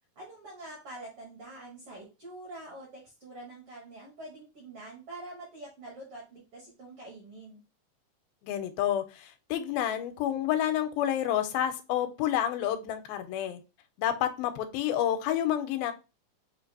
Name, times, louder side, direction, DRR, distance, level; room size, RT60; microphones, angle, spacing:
voice 1, 0.1-7.6, right 2 dB, 65° right, -2 dB, 1.4 m, -45 dB
voice 2, 8.4-13.6 14.0-15.9, left 11 dB, 85° left, 9 dB, 2.4 m, -29 dB
6.3 x 2.5 x 2.7 m, 0.30 s
omnidirectional pair, 4.1 m